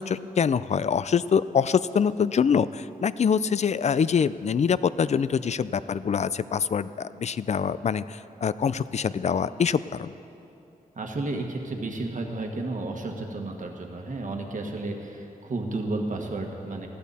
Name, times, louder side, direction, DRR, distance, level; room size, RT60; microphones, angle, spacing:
voice 1, 0.0-10.1, left 6 dB, 50° left, 16 dB, 0.4 m, -25 dB
voice 2, 11.0-16.9, right 2 dB, 60° right, 2 dB, 1.6 m, -32 dB
20.5 x 15.0 x 4.2 m, 2.9 s
wide cardioid pair, 150°, 15 cm